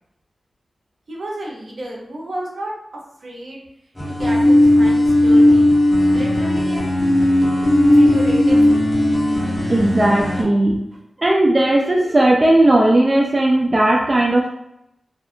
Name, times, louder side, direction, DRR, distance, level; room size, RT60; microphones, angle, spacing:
voice 1, 1.1-2.7 3.2-3.6 4.1-5.8 6.1-7.0 8.0-8.9, right 1 dB, 65° right, -2 dB, 0.7 m, -31 dB
sound 1, 3.9-10.4, left 1 dB, 15° left, 0.8 m, -15 dB
voice 2, 9.4-10.8 11.2-14.5, right 1 dB, 30° right, -1 dB, 0.3 m, -16 dB
2.4 x 2.3 x 2.7 m, 0.81 s
wide cardioid pair, 80°, 0 cm